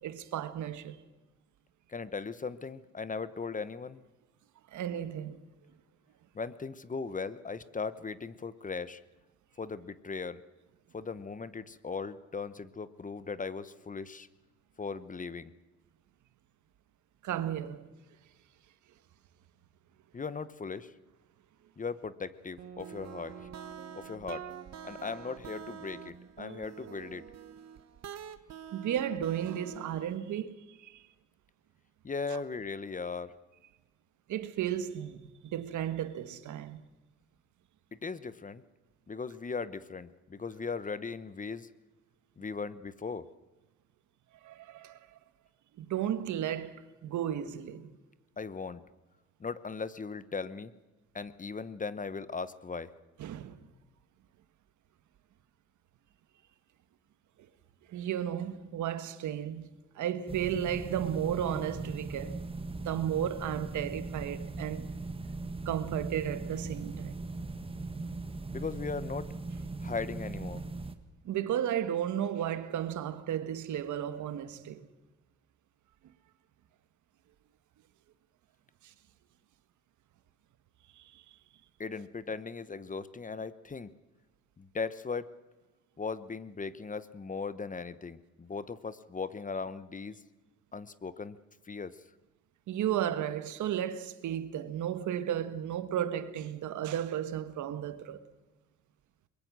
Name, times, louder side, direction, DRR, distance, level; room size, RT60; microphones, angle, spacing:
voice 1, 0.0-1.0 4.7-5.4 17.2-17.9 28.7-31.0 32.3-32.4 34.3-36.8 44.4-45.0 45.8-47.9 53.2-53.5 57.9-59.7 59.9-62.4 62.8-64.8 65.6-67.2 71.2-74.9 78.8-78.9 81.0-81.2 92.7-98.2, right 10 dB, 75° right, 1.5 m, -34 dB
voice 2, 1.9-4.0 6.3-9.0 9.6-10.4 10.9-14.3 14.8-15.5 20.1-20.9 21.8-23.5 23.9-24.4 24.8-27.2 32.0-33.3 38.0-38.6 39.1-41.7 42.4-43.2 48.4-48.8 49.4-50.7 51.1-52.9 68.5-69.3 69.8-70.6 81.8-83.9 84.6-85.3 86.0-90.2 90.7-91.4 91.7-92.0, left 4 dB, 25° left, 1.0 m, -38 dB
sound 1, 22.6-30.2, right 8 dB, 60° right, 1.3 m, -46 dB
sound 2, 60.3-70.9, right 3 dB, 20° right, 1.7 m, -39 dB
23.0 x 21.5 x 6.2 m
cardioid pair, 90°, 30 cm